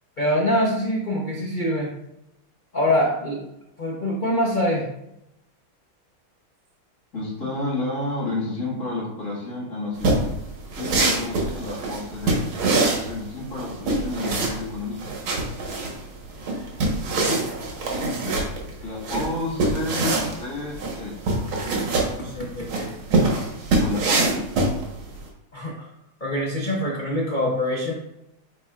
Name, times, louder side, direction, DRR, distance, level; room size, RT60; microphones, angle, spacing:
voice 1, 0.2-1.9 2.7-3.4 3.8-4.9 16.6-16.9 17.2-17.5 22.2-22.9 25.5-25.9 26.2-27.9, left 1 dB, 85° left, -2 dB, 0.4 m, -24 dB
voice 2, 7.1-10.3 10.7-12.4 13.0-15.0 18.8-21.2 23.8-24.4, left 2 dB, 40° left, -6 dB, 2.2 m, -30 dB
sound 1, 10.0-25.2, right 2 dB, 70° right, 2.1 m, -24 dB
8.4 x 4.9 x 2.4 m, 0.86 s
omnidirectional pair, 2.3 m